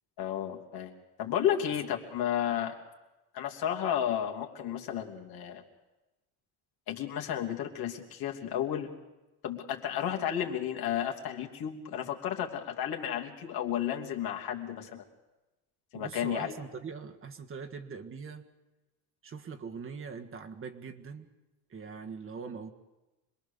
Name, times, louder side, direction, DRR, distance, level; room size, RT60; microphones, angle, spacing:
voice 1, 0.2-0.9 1.2-2.7 3.3-5.6 6.9-8.9 9.4-15.0 15.9-16.5, left 10 dB, 65° left, 1 dB, 2.8 m, -32 dB
voice 2, 15.9-18.5 19.2-21.3 21.7-22.7, right 5 dB, 30° right, 5 dB, 1.6 m, -42 dB
26.0 x 21.0 x 7.0 m, 1.1 s
cardioid pair, 130°, 40 cm